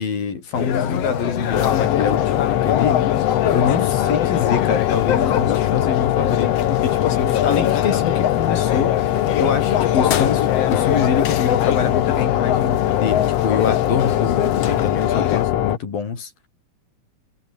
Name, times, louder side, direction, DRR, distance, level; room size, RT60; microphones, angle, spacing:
voice 1, 0.0-3.1 3.5-9.1 9.4-16.3, left 6 dB, 90° left, 6.3 m, -25 dB
sound 1, 0.5-15.5, left 9 dB, 55° left, 2.2 m, -24 dB
sound 2, 1.5-15.8, left 13 dB, 70° left, 1.7 m, -21 dB
omnidirectional pair, 4.0 m